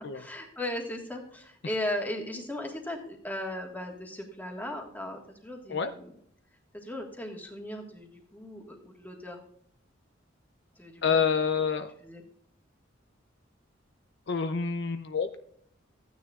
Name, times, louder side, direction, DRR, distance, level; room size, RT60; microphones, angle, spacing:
voice 1, 0.0-6.1 6.7-9.4 10.8-11.3 12.0-12.2, left 1 dB, 10° left, 1 dB, 1.6 m, -37 dB
voice 2, 11.0-11.9 14.3-15.4, left 6 dB, 65° left, 8 dB, 0.6 m, -27 dB
14.5 x 9.4 x 2.4 m, 0.64 s
head